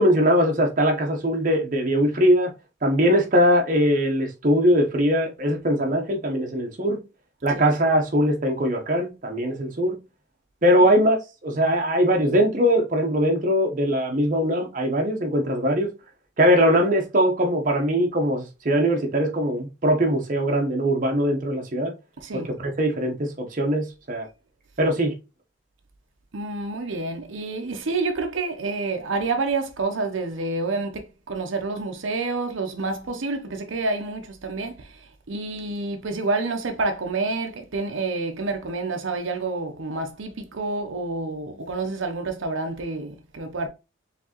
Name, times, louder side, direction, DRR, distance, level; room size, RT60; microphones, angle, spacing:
voice 1, 0.0-2.5 2.8-7.0 7.4-10.0 10.6-11.2 11.4-15.9 16.4-21.9 22.3-24.3 24.8-25.1, equal, 40° right, 0.9 m, -21 dB
voice 2, 22.2-22.5 26.3-43.7, right 3 dB, 80° right, 0.7 m, -28 dB
4.6 x 3.4 x 2.9 m
head